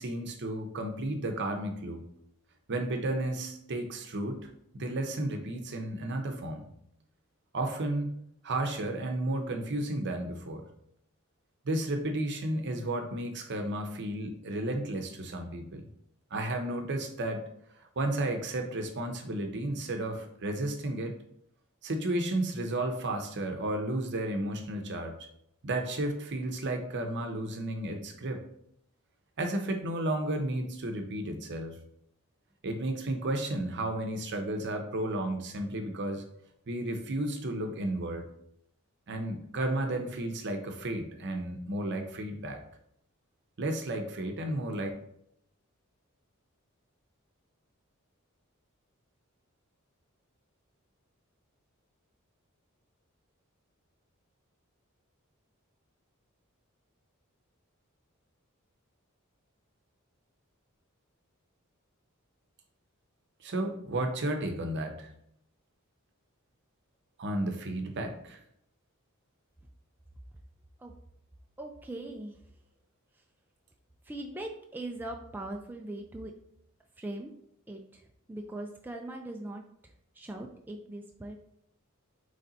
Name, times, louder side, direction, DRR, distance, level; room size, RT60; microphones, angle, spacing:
voice 1, 0.0-2.0 2.7-4.5 4.7-6.7 7.5-8.1 8.4-10.7 11.6-15.9 16.3-17.5 18.0-21.1 21.8-25.2 25.6-28.4 29.4-31.8 32.6-36.2 36.7-38.2 39.1-42.6 43.6-44.9 63.4-65.1 67.2-68.4, right 1 dB, 55° right, 5 dB, 0.7 m, -33 dB
voice 2, 71.6-72.4 74.0-76.3 77.0-77.3 77.7-78.0 78.3-79.6 80.2-81.4, right 1 dB, 10° right, 2 dB, 0.3 m, -40 dB
4.1 x 3.2 x 3.9 m, 0.73 s
head